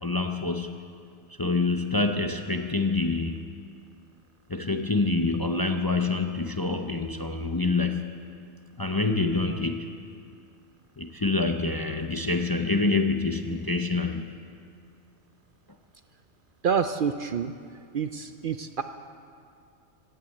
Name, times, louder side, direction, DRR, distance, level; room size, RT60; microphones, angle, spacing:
voice 1, 0.0-0.7 1.4-3.4 4.5-8.1 8.8-9.9 11.0-14.2, left 3 dB, 25° left, 5 dB, 0.6 m, -26 dB
voice 2, 16.6-17.5 17.9-18.8, right 6 dB, 55° right, 9 dB, 0.6 m, -27 dB
16.5 x 10.5 x 8.0 m, 2.3 s
omnidirectional pair, 1.2 m